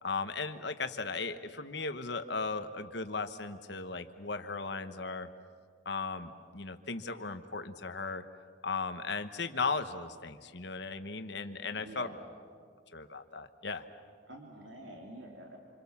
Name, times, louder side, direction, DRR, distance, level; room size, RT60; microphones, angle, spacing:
voice 1, 0.0-5.3 5.8-8.2 8.6-12.1 12.9-13.8, left 4 dB, 60° left, 8 dB, 1.3 m, -36 dB
voice 2, 11.7-12.3 14.3-15.6, right 1 dB, 70° right, 0 dB, 3.1 m, -48 dB
27.5 x 26.0 x 7.3 m, 2.1 s
head